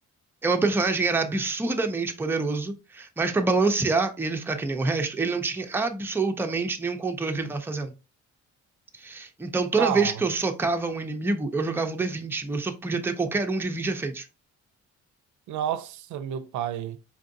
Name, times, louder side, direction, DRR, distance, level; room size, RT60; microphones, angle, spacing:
voice 1, 0.4-7.9 9.0-14.3, right 3 dB, 10° right, 0.5 m, -26 dB
voice 2, 9.8-10.2 15.5-17.0, right 10 dB, 75° right, 0.5 m, -30 dB
4.5 x 2.5 x 2.5 m
cardioid pair, 90°, 30 cm